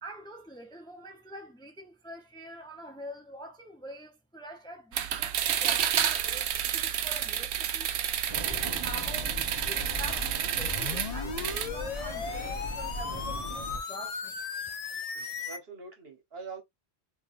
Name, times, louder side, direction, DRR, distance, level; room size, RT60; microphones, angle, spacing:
voice 1, 0.0-7.9 8.5-14.4, right 1 dB, 5° left, 0.6 m, -45 dB
sound 1, 4.9-11.7, right 10 dB, 85° right, 0.9 m, -30 dB
sound 2, 8.3-13.8, equal, 30° right, 1.0 m, -38 dB
sound 3, 10.6-15.6, left 5 dB, 45° left, 0.6 m, -36 dB
voice 2, 15.1-16.6, right 4 dB, 65° right, 1.5 m, -44 dB
3.5 x 3.2 x 2.5 m
omnidirectional pair, 1.1 m